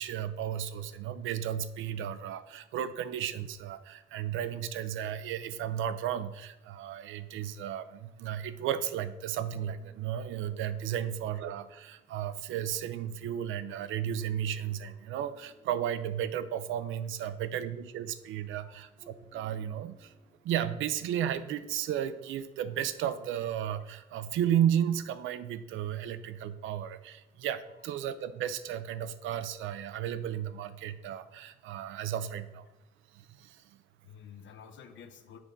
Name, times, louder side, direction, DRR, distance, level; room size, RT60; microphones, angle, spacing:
voice 1, 0.0-20.1 20.4-32.7 33.1-33.6, right 10 dB, 80° right, 13 dB, 0.5 m, -34 dB
sound 1, 9.1-22.3, right 1 dB, 50° left, 1.7 m, -64 dB
voice 2, 34.0-35.4, left 7 dB, 70° left, 7 dB, 0.8 m, -51 dB
6.1 x 3.5 x 5.1 m, 0.99 s
cardioid pair, 90°, 20 cm